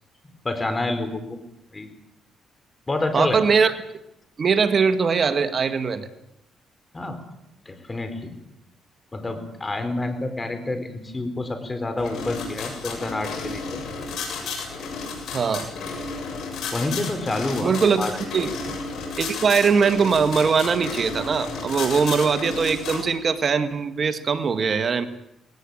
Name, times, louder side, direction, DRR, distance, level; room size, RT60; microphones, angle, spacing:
voice 1, 0.4-1.4 1.7-1.9 2.9-3.6 6.9-7.2 7.7-8.4 9.1-13.8 16.7-18.1, left 2 dB, 20° left, 9 dB, 4.2 m, -28 dB
voice 2, 3.1-3.7 4.4-6.1 15.3-15.7 17.6-18.1 18.3-18.8 19.2-25.1, right 5 dB, 45° right, 9 dB, 1.7 m, -21 dB
sound 1, 12.0-23.1, left 4 dB, 70° left, 7.3 m, -33 dB
19.5 x 18.0 x 8.9 m, 0.84 s
cardioid pair, 90°, 0 cm